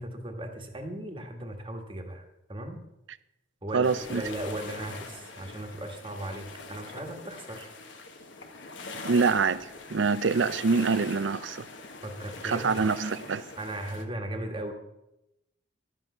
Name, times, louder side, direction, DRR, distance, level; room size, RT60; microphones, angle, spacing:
voice 1, 0.0-2.8 3.6-7.7 12.0-12.9 13.6-14.7, right 1 dB, 25° right, 1.4 m, -37 dB
voice 2, 3.7-4.2 9.0-11.6 12.4-13.4, right 4 dB, 70° right, 0.5 m, -25 dB
sound 1, 3.8-14.0, left 3 dB, 70° left, 1.3 m, -43 dB
12.5 x 8.3 x 5.5 m
head